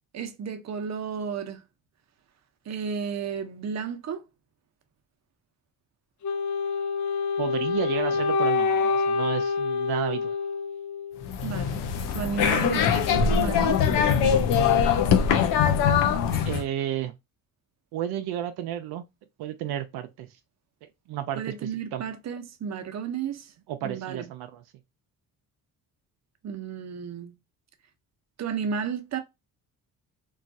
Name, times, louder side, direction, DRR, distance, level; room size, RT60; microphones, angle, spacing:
voice 1, 0.1-1.6 2.7-4.2 11.4-11.8 12.1-13.8 21.3-23.5 23.8-24.3 26.4-27.4 28.4-29.2, right 6 dB, 45° right, 0.7 m, -32 dB
Wind instrument woodwind instrument, 6.2-11.3, left 5 dB, 50° left, 0.6 m, -26 dB
voice 2, 7.4-10.3 16.4-17.1 17.9-19.0 19.4-20.3 20.8-22.0 23.7-24.6, right 11 dB, 80° right, 0.5 m, -32 dB
sound 1, 11.2-16.6, left 7 dB, 90° left, 0.6 m, -22 dB
3.1 x 2.3 x 2.5 m
cardioid pair, 75°, 38 cm